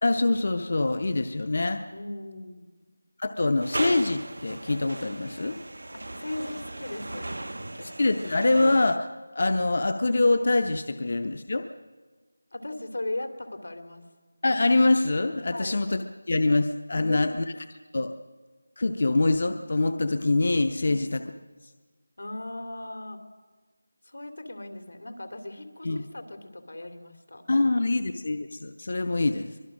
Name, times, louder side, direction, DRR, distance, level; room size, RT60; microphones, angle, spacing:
voice 1, 0.0-1.8 3.2-5.6 7.8-9.1 9.3-11.6 14.4-17.4 17.9-18.1 18.8-21.2 25.8-26.0 27.5-29.5, left 2 dB, 35° left, 8 dB, 0.7 m, -24 dB
voice 2, 1.9-2.7 5.9-8.3 12.5-14.0 15.5-15.8 17.0-17.5 20.8-21.0 22.2-23.2 24.0-27.4, left 1 dB, 85° left, 7 dB, 2.9 m, -38 dB
sound 1, 3.6-9.0, right 2 dB, 75° right, 0.7 m, -37 dB
24.0 x 21.5 x 6.3 m, 1.4 s
figure-of-eight pair, 180°, 0 cm